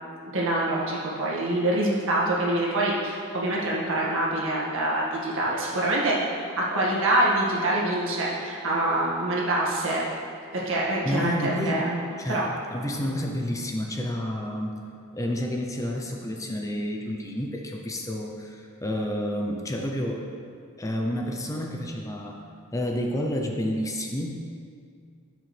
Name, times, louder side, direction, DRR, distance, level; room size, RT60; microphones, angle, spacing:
voice 1, 0.3-10.0 10.5-12.4, right 1 dB, 65° right, -5 dB, 1.9 m, -25 dB
voice 2, 11.0-11.9 12.2-12.5 12.7-14.7 15.1-20.3 20.8-22.4 22.7-24.4, equal, 15° left, 1 dB, 0.6 m, -30 dB
13.0 x 6.3 x 3.3 m, 2.3 s
head